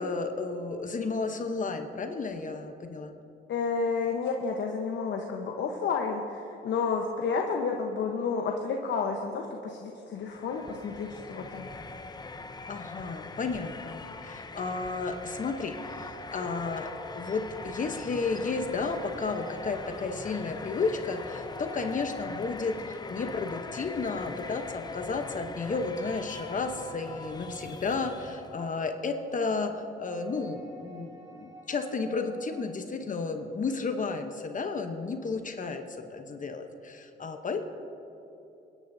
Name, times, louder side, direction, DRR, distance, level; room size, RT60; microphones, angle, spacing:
voice 1, 0.0-3.1 12.7-16.9 17.2-29.7 30.0-37.6, left 4 dB, 40° left, 6 dB, 1.0 m, -33 dB
voice 2, 3.5-11.7, left 5 dB, 65° left, 1 dB, 1.1 m, -31 dB
sound 1, 10.2-28.7, left 3 dB, 20° left, 0.6 m, -41 dB
sound 2, 14.3-22.7 25.1-32.8, right 2 dB, 20° right, 3.5 m, -51 dB
27.5 x 10.5 x 2.7 m, 3.0 s
cardioid pair, 90°, 20 cm